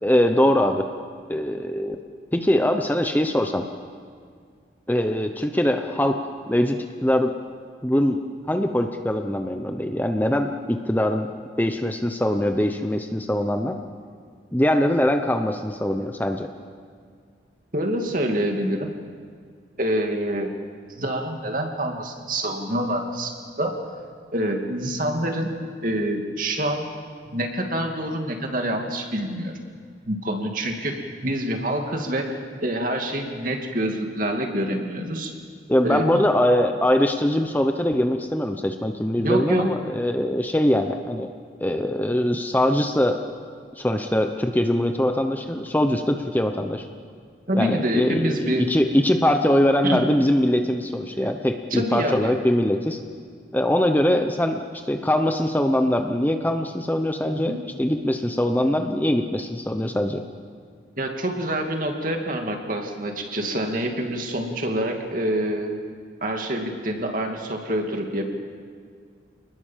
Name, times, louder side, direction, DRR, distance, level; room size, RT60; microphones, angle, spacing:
voice 1, 0.0-0.8 1.3-2.0 2.3-3.6 4.9-6.2 6.5-7.3 7.8-8.2 8.5-11.3 11.6-13.7 14.5-16.5 35.7-41.3 41.6-43.2 43.8-46.9 47.5-53.0 53.5-60.2, left 1 dB, 10° left, 5 dB, 0.9 m, -22 dB
voice 2, 17.7-18.9 19.8-20.5 20.9-23.7 24.3-25.5 25.8-26.9 27.3-29.5 30.1-35.3 35.8-36.2 39.2-39.7 47.5-48.6 49.8-50.1 51.7-52.4 57.3-57.6 61.0-65.7 66.2-68.2, right 1 dB, 45° right, 3 dB, 2.6 m, -26 dB
28.0 x 20.0 x 7.5 m, 2.1 s
head